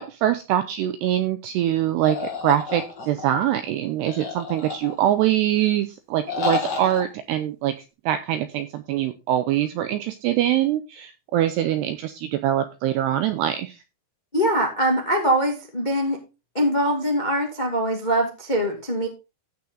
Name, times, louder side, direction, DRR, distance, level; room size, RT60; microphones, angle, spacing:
voice 1, 0.0-7.7 8.1-13.8, right 12 dB, 90° right, 10 dB, 2.4 m, -23 dB
sound 1, 2.0-3.4 4.1-5.2 6.3-7.0, left 5 dB, 45° left, 1.4 m, -29 dB
voice 2, 14.3-16.2 16.5-19.1, equal, 65° left, 1 dB, 0.4 m, -23 dB
15.5 x 5.7 x 3.9 m, 0.27 s
omnidirectional pair, 5.6 m